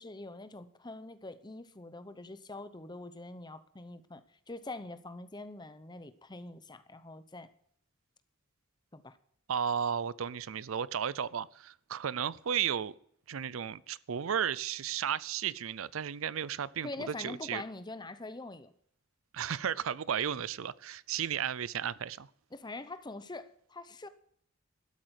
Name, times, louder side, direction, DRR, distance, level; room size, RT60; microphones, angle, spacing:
voice 1, 0.0-7.5 8.9-9.2 16.8-18.7 22.5-24.1, left 2 dB, 20° left, 0.8 m, -44 dB
voice 2, 9.5-13.0 13.3-17.6 19.3-22.3, right 8 dB, 80° right, 0.5 m, -34 dB
12.5 x 8.3 x 8.1 m
head